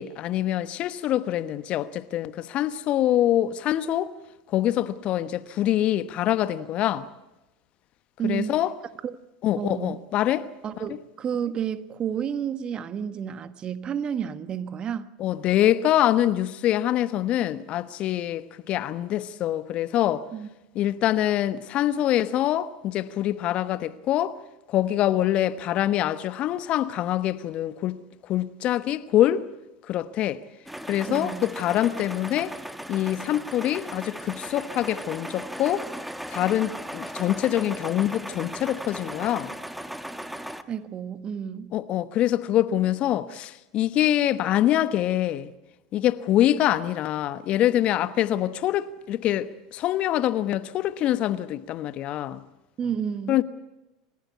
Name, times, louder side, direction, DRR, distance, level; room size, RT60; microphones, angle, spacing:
voice 1, 0.0-4.1 4.5-7.1 8.2-8.7 9.4-10.5 10.8-10.9 15.2-20.3 20.7-24.4 24.7-28.0 28.2-29.5 29.9-30.4 30.9-32.5 32.9-35.9 36.3-39.5 41.7-45.5 45.9-52.4 53.3-53.4, left 12 dB, 45° left, 1.1 m, -25 dB
voice 2, 8.2-8.6 9.0-9.2 9.6-10.0 10.6-15.1 20.3-20.5 31.1-31.5 40.7-41.7 52.8-53.4, right 8 dB, 35° right, 1.5 m, -31 dB
sound 1, 30.7-40.6, equal, 5° right, 1.5 m, -37 dB
28.0 x 15.5 x 8.2 m
hypercardioid pair, 80°, 3 cm